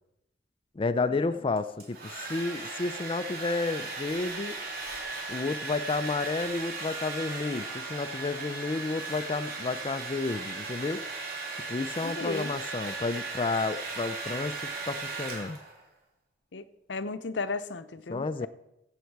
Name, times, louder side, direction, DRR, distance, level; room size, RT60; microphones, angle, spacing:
voice 1, 0.8-4.5 5.3-11.1 11.7-15.6 18.1-18.5, left 3 dB, 30° left, 0.4 m, -31 dB
Domestic sounds home sounds, 1.6-15.8, right 3 dB, 55° right, 2.9 m, -37 dB
voice 2, 12.0-12.5 16.5-16.6 16.9-18.5, left 3 dB, 75° left, 0.7 m, -35 dB
15.0 x 8.1 x 4.6 m
head